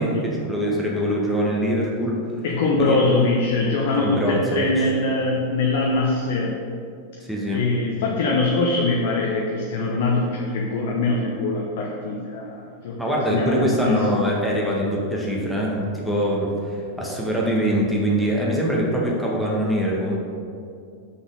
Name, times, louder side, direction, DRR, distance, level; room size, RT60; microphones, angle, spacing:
voice 1, 0.0-2.2 2.8-3.0 3.9-4.7 7.3-7.6 13.0-20.2, equal, ahead, -4 dB, 1.5 m, -23 dB
voice 2, 2.4-6.6 7.5-13.0 13.3-14.2, left 3 dB, 50° left, -1 dB, 0.9 m, -23 dB
6.4 x 5.9 x 5.4 m, 2.4 s
figure-of-eight pair, 90°, 0 cm